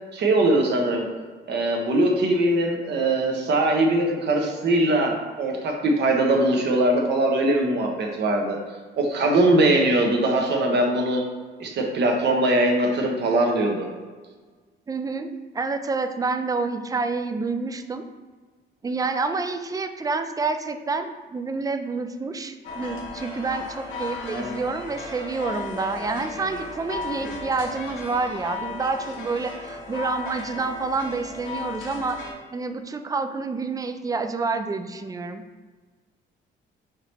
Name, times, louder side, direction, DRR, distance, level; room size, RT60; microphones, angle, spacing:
voice 1, 0.1-1.0 1.5-8.6 8.9-11.2 11.6-13.9 24.3-24.5, right 1 dB, 60° right, 1 dB, 0.9 m, -21 dB
voice 2, 14.9-18.0 18.8-32.2 32.5-35.4, right 4 dB, 20° right, 8 dB, 0.3 m, -28 dB
sound 1, 22.6-32.3, left 3 dB, 80° left, 0.8 m, -36 dB
4.7 x 2.9 x 3.3 m, 1.4 s
cardioid pair, 90°, 20 cm